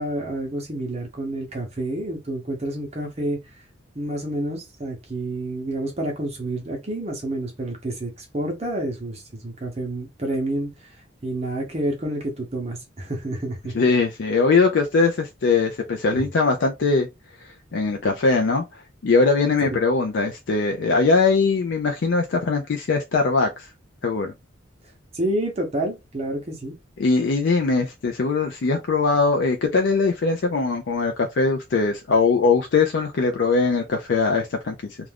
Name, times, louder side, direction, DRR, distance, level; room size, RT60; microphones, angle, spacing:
voice 1, 0.0-3.4 4.0-10.9 11.2-13.7 16.1-16.3 25.1-26.8, right 1 dB, 35° right, 0.7 m, -29 dB
voice 2, 13.7-17.1 17.4-23.7 24.0-24.3 27.0-35.0, left 4 dB, 65° left, 0.4 m, -21 dB
2.4 x 2.3 x 3.3 m
head